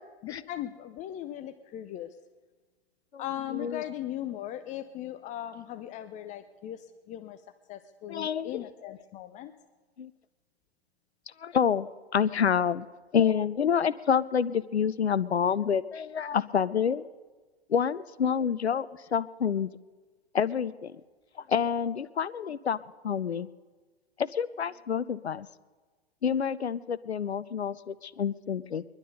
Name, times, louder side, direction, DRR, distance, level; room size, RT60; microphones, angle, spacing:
voice 1, 0.2-2.1 3.2-7.4 7.7-9.5, left 12 dB, 25° left, 11 dB, 0.6 m, -38 dB
voice 2, 3.5-3.8 8.1-8.7 10.0-10.1 11.4-12.9 13.1-17.1 17.7-19.7 20.3-21.0 21.5-23.5 24.2-25.5 26.2-28.9, left 7 dB, 85° left, 17 dB, 0.7 m, -28 dB
22.5 x 11.5 x 5.3 m, 1.3 s
figure-of-eight pair, 110°, 32 cm